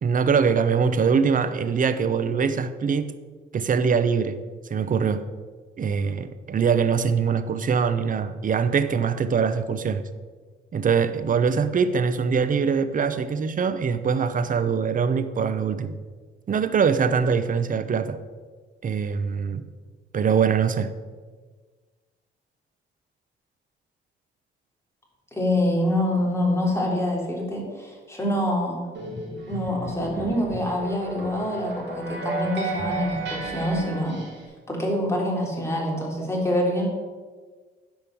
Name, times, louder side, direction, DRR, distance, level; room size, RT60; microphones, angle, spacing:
voice 1, 0.0-3.1 3.5-4.4 4.7-5.3 5.8-10.1 10.7-16.0 16.5-18.2 18.8-19.7 20.1-20.9, right 6 dB, 45° right, 11 dB, 0.8 m, -23 dB
voice 2, 25.3-28.8 29.5-34.2 34.7-36.9, left 1 dB, 15° left, -2 dB, 3.7 m, -25 dB
sound 1, 29.0-34.5, right 2 dB, 65° right, 3.4 m, -33 dB
10.5 x 5.3 x 7.7 m, 1.4 s
cardioid pair, 90°, 20 cm